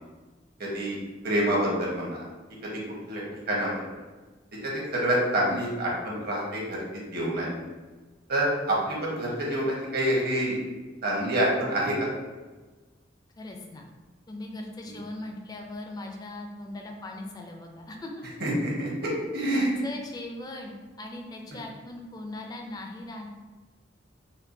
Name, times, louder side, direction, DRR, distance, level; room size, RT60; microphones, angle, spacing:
voice 1, 0.6-1.0 1.2-2.2 2.6-2.7 3.1-3.2 3.5-3.7 4.6-6.8 7.1-7.5 8.3-10.5 11.0-11.9 14.8-15.0 18.4-19.8, right 1 dB, 55° right, -4 dB, 1.0 m, -27 dB
voice 2, 13.4-13.8 14.3-18.1 19.5-23.3, left 2 dB, 20° left, 2 dB, 0.4 m, -39 dB
4.3 x 2.3 x 2.6 m, 1.3 s
head